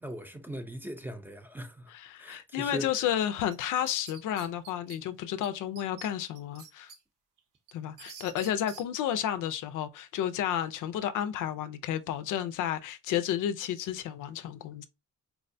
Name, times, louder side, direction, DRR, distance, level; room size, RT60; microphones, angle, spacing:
voice 1, 0.0-1.9 2.2-3.1, equal, 5° right, 0.6 m, -40 dB
voice 2, 1.9-6.9 7.7-14.9, left 10 dB, 90° left, 0.5 m, -32 dB
sound 1, 3.5-5.0 5.4-5.5 5.8-7.0 7.4-8.8, right 6 dB, 90° right, 0.7 m, -48 dB
4.5 x 2.1 x 2.6 m
cardioid pair, 80°, 30 cm